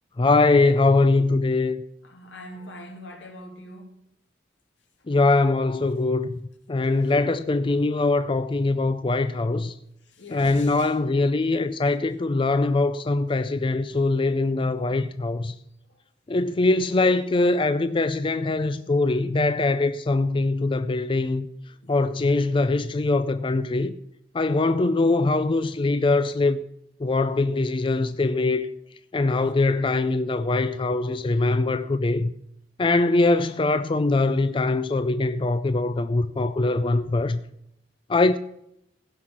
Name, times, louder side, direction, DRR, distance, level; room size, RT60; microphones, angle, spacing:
voice 1, 0.2-1.8 5.1-6.3 6.7-9.7 10.3-15.5 16.3-21.5 21.9-23.9 24.3-26.6 27.0-28.7 29.1-32.3 32.8-37.4 38.1-38.4, left 2 dB, 30° left, 0.4 m, -22 dB
voice 2, 2.0-3.9 6.8-7.3 10.0-11.0 15.9-16.0 17.6-17.9 21.7-22.0, left 1 dB, 85° left, 2.5 m, -43 dB
15.5 x 5.8 x 7.3 m
head